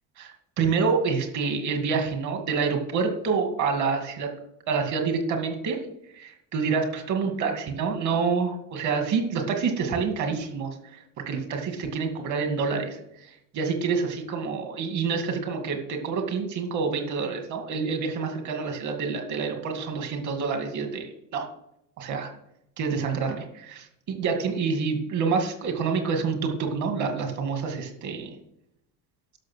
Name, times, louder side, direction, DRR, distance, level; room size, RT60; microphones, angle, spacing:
voice 1, 0.2-4.3 4.7-5.8 6.1-11.0 11.3-21.5 22.0-22.3 22.8-28.4, right 5 dB, 50° right, 4 dB, 2.3 m, -27 dB
12.0 x 6.5 x 6.2 m, 0.79 s
cardioid pair, 145°, 37 cm